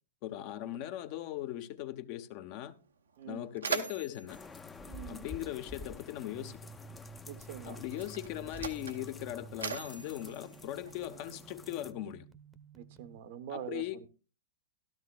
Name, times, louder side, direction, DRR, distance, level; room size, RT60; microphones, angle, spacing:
voice 1, 0.2-2.7 3.2-4.4 5.1-6.6 7.6-12.3 13.5-14.0, left 13 dB, 50° left, 0.8 m, -39 dB
Mechanisms, 2.7-2.8 3.1-5.8 6.8-7.0 7.8-11.4, right 6 dB, 85° right, 0.9 m, -41 dB
voice 2, 3.2-3.5 4.8-5.3 7.3-7.8 12.7-14.1, right 10 dB, 60° right, 0.9 m, -44 dB
sound 1, 4.3-11.9, left 3 dB, 15° left, 0.6 m, -50 dB
sound 2, 6.3-13.2, right 4 dB, 15° right, 0.8 m, -52 dB
13.5 x 12.5 x 2.3 m
hypercardioid pair, 110°, 0 cm